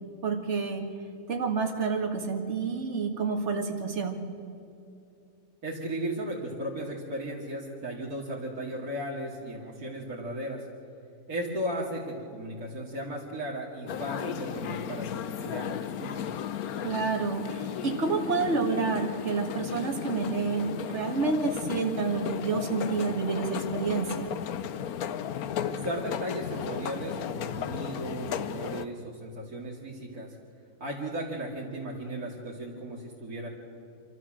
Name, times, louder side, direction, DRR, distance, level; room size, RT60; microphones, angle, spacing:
voice 1, 0.2-0.9 1.3-4.2 16.8-24.3, right 4 dB, 50° right, 4 dB, 2.2 m, -29 dB
voice 2, 5.6-10.6 11.3-16.3 25.6-30.3 30.8-33.5, right 1 dB, 85° right, -5 dB, 3.0 m, -36 dB
sound 1, 13.9-28.9, left 9 dB, 90° left, 1.3 m, -35 dB
27.0 x 14.0 x 7.6 m, 2.6 s
omnidirectional pair, 1.5 m